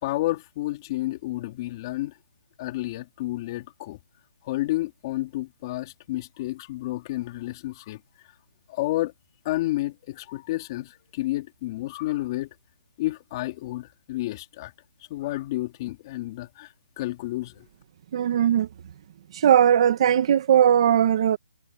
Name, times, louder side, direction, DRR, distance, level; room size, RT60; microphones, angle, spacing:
voice 1, 0.0-2.2 2.6-4.0 4.4-8.0 8.7-9.1 9.4-12.5 13.0-14.7 15.1-16.7 17.0-17.7, left 17 dB, 25° left, 3.6 m, -30 dB
voice 2, 18.1-18.7 19.3-21.4, right 9 dB, 35° right, 1.8 m, -19 dB
hypercardioid pair, 170°, 5 cm